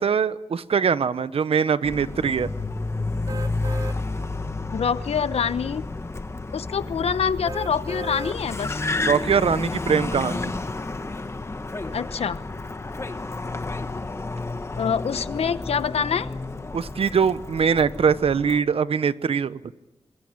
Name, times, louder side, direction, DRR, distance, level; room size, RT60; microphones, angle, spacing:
voice 1, 0.0-2.5 9.1-10.5 16.7-19.6, right 6 dB, 70° right, 15 dB, 0.8 m, -22 dB
Car, 1.8-18.6, left 3 dB, 25° left, 1.2 m, -31 dB
sound 1, 3.3-4.0 4.5-4.6 7.4-8.4 8.9-9.0, right 3 dB, 35° right, 1.5 m, -35 dB
voice 2, 4.7-5.8 6.5-8.8 11.9-12.4 14.8-16.3, left 7 dB, 85° left, 14 dB, 0.9 m, -25 dB
26.0 x 20.5 x 8.9 m, 1.0 s
wide cardioid pair, 140°, 10 cm